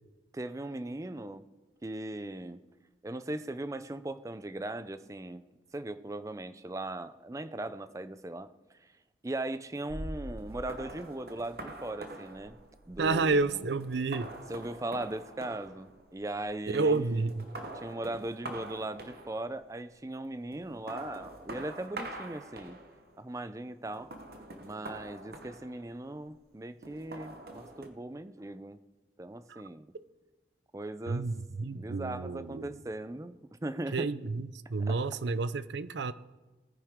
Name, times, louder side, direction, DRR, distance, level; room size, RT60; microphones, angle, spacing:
voice 1, 0.3-1.4 1.8-2.6 3.0-5.4 5.7-8.5 8.8-8.9 9.2-12.6 12.9-13.4 14.5-17.2 17.7-22.8 23.2-24.1 24.6-28.8 29.2-29.9 30.7-31.3 31.6-34.1 34.9-35.0, right 1 dB, 15° right, 0.4 m, -39 dB
sound 1, 9.9-16.6 16.9-19.7 20.5-23.2 23.9-26.2 26.8-27.9, right 1 dB, 55° right, 1.0 m, -45 dB
voice 2, 13.0-14.3 16.7-17.5 29.5-29.6 31.1-32.7 33.9-36.1, right 3 dB, 75° right, 0.5 m, -30 dB
20.0 x 9.7 x 3.6 m
head